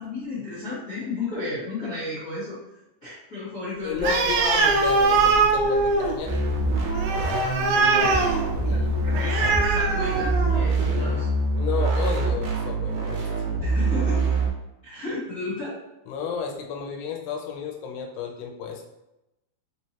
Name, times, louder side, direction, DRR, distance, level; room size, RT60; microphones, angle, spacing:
voice 1, 0.0-2.6 3.0-4.2 8.6-11.3 13.6-14.3 14.8-15.8, left 2 dB, 60° left, -12 dB, 0.9 m, -33 dB
voice 2, 3.8-6.4 8.7-8.9 11.6-13.3 16.1-18.8, left 6 dB, 90° left, 2 dB, 2.8 m, -32 dB
Animal, 4.0-10.7, right 3 dB, 90° right, 1.9 m, -22 dB
sound 1, 6.3-14.5, right 2 dB, 70° right, 2.1 m, -25 dB
5.9 x 3.1 x 2.9 m, 0.91 s
omnidirectional pair, 4.7 m